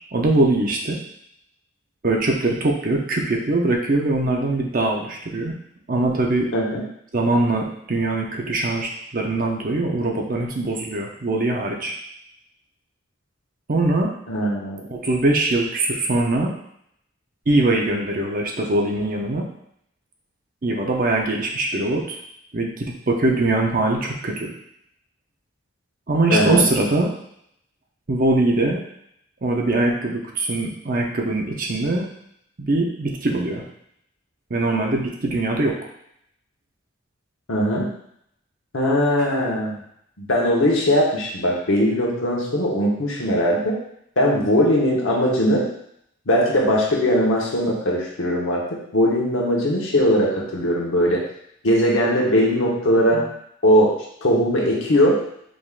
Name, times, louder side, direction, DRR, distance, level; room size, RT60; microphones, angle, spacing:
voice 1, 0.1-1.0 2.0-5.5 5.9-6.5 7.1-11.9 13.7-14.1 14.9-16.5 17.5-19.5 20.6-22.2 22.5-24.5 26.1-27.1 28.1-28.8 29.4-32.1 32.6-33.6 34.5-35.8 39.2-39.4, right 2 dB, 45° right, 0 dB, 0.7 m, -22 dB
voice 2, 6.5-6.8 14.3-14.8 26.3-26.6 37.5-37.9 38.7-39.8 40.2-43.8 44.2-45.7 46.3-51.3 51.6-53.3 53.6-55.3, equal, 80° left, -3 dB, 1.1 m, -20 dB
5.0 x 3.6 x 2.4 m, 0.72 s
head